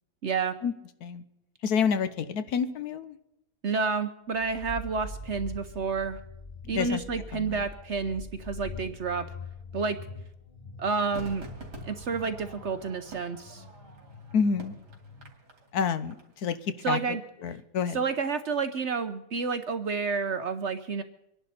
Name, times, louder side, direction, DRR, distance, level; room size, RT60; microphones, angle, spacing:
voice 1, 0.2-0.5 3.6-6.2 6.7-9.3 9.7-10.0 10.8-11.4 11.8-13.6 16.8-17.2 17.9-21.0, right 5 dB, 55° right, 10 dB, 0.9 m, -30 dB
voice 2, 1.6-3.2 6.6-7.0 7.3-7.6 14.3-14.7 15.7-17.2 17.4-18.0, left 6 dB, 70° left, 12 dB, 1.3 m, -28 dB
sound 1, 4.3-15.3, left 2 dB, 30° left, 0.6 m, -44 dB
Crowd / Fireworks, 11.1-16.5 16.8-16.9, right 2 dB, 90° right, 3.0 m, -46 dB
25.5 x 11.0 x 4.2 m, 0.84 s
omnidirectional pair, 1.7 m